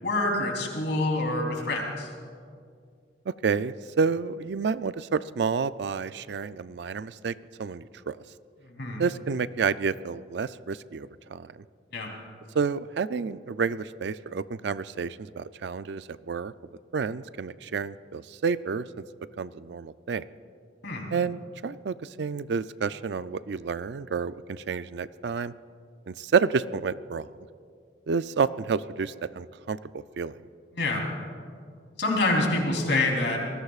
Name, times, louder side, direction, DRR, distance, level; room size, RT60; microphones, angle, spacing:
voice 1, 0.0-2.1 8.8-9.0 11.9-12.1 20.8-21.1 30.7-31.0 32.0-33.4, left 2 dB, 70° left, 0 dB, 3.4 m, -26 dB
voice 2, 3.3-8.2 9.0-11.5 12.5-16.5 16.9-18.9 19.4-20.2 21.1-25.5 26.1-27.3 28.1-30.3, right 5 dB, 65° right, 14 dB, 0.4 m, -29 dB
28.0 x 20.0 x 2.4 m, 2.2 s
head